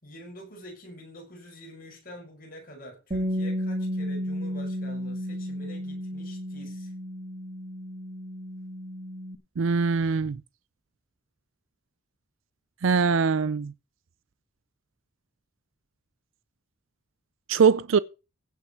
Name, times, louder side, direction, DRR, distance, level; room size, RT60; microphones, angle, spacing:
voice 1, 0.0-6.9, equal, 45° left, 6.3 m, -46 dB
Bass guitar, 3.1-9.4, equal, 35° right, 2.2 m, -33 dB
voice 2, 9.6-10.4 12.8-13.7 17.5-18.0, right 5 dB, 75° right, 0.5 m, -22 dB
16.5 x 5.9 x 5.8 m
head